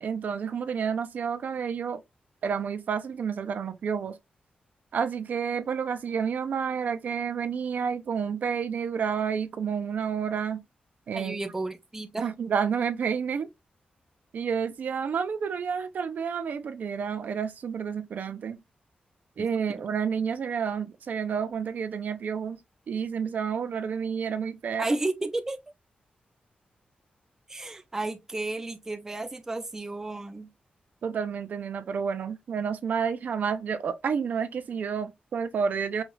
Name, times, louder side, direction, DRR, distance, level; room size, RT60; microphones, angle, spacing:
voice 1, 0.0-2.0 2.4-4.2 4.9-10.6 11.1-11.4 12.2-13.5 14.3-18.6 19.4-22.6 22.9-24.9 31.0-36.0, right 6 dB, 65° right, 0.5 m, -30 dB
voice 2, 11.1-12.3 19.4-19.8 24.8-25.6 27.5-30.5, right 2 dB, 15° right, 0.5 m, -33 dB
5.2 x 2.4 x 3.1 m
wide cardioid pair, 170°, 3 cm